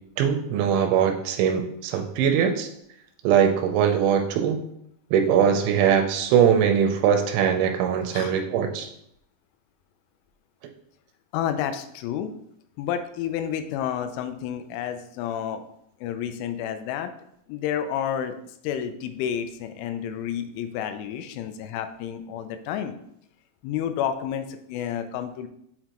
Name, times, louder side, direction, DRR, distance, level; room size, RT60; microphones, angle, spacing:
voice 1, 0.2-2.7 3.2-4.6 5.1-8.9, right 8 dB, 80° right, 5 dB, 2.8 m, -21 dB
voice 2, 8.1-8.4 11.3-12.3 12.8-15.7 16.0-17.1 17.5-23.0 23.6-25.5, left 9 dB, 85° left, 8 dB, 3.1 m, -30 dB
7.8 x 4.7 x 2.9 m, 0.74 s
omnidirectional pair, 5.6 m